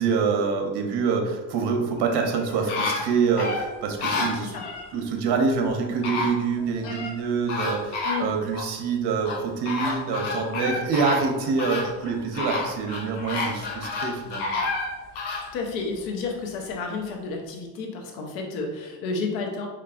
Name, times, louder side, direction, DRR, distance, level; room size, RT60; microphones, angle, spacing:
voice 1, 0.0-4.6 4.9-14.6, right 5 dB, 55° right, 3 dB, 0.9 m, -26 dB
sound 1, 2.0-4.9 5.7-5.8 6.0-7.2 7.5-8.7 9.2-15.5 16.0-16.1, left 3 dB, 55° left, 1.0 m, -30 dB
voice 2, 4.3-4.6 8.0-8.3 15.5-19.7, left 4 dB, 85° left, 2 dB, 1.0 m, -31 dB
4.4 x 3.2 x 2.5 m, 1.2 s
supercardioid pair, 105°, 49 cm